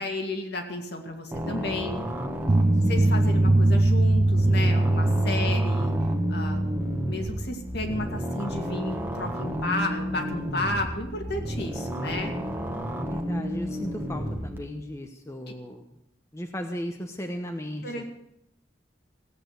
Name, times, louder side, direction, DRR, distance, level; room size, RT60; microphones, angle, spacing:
voice 1, 0.0-2.0 2.9-5.9 6.3-6.7 7.0-12.3 15.5-15.6 17.8-18.0, left 2 dB, 55° left, 4 dB, 2.3 m, -32 dB
sound 1, 1.3-14.6, equal, 10° right, 1.4 m, -32 dB
sound 2, 2.5-7.5, right 2 dB, 30° right, 0.5 m, -22 dB
voice 2, 2.7-3.2 12.9-15.9 16.3-18.0, equal, 15° left, 4 dB, 0.9 m, -36 dB
16.5 x 8.7 x 8.1 m, 0.81 s
head